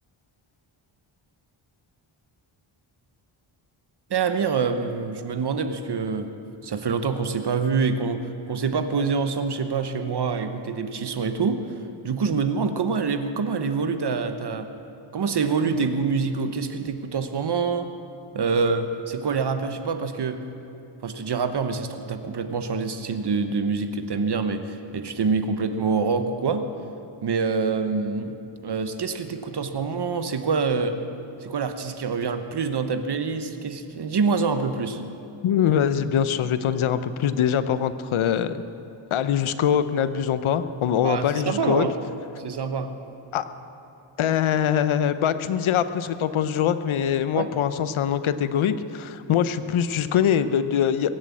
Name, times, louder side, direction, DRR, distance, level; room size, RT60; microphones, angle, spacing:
voice 1, 4.1-6.3 6.6-14.7 15.1-17.9 18.3-20.4 21.0-26.6 27.2-31.0 31.4-35.0 41.0-42.0 42.4-42.9 47.3-47.5, right 5 dB, 55° right, 8 dB, 1.0 m, -26 dB
voice 2, 35.4-38.6 39.1-41.9 43.3-43.4 44.2-51.1, left 9 dB, 70° left, 12 dB, 0.8 m, -23 dB
22.5 x 7.6 x 8.5 m, 2.9 s
wide cardioid pair, 105°, 50 cm